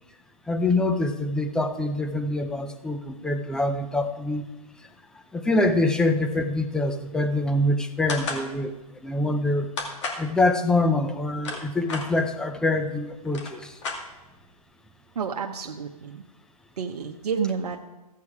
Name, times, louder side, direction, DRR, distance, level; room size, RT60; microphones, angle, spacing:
voice 1, 0.5-4.4 5.3-8.7 9.0-9.7 10.2-13.7, left 2 dB, 5° left, 7 dB, 0.6 m, -25 dB
sound 1, 8.1-8.5 9.8-10.3 11.2-12.1 12.9-13.0 13.2-14.4, left 3 dB, 50° left, 2.3 m, -32 dB
voice 2, 15.1-16.2 16.8-17.8, right 6 dB, 75° right, 2 dB, 1.0 m, -30 dB
14.5 x 8.5 x 4.8 m, 1.1 s
hypercardioid pair, 140°, 20 cm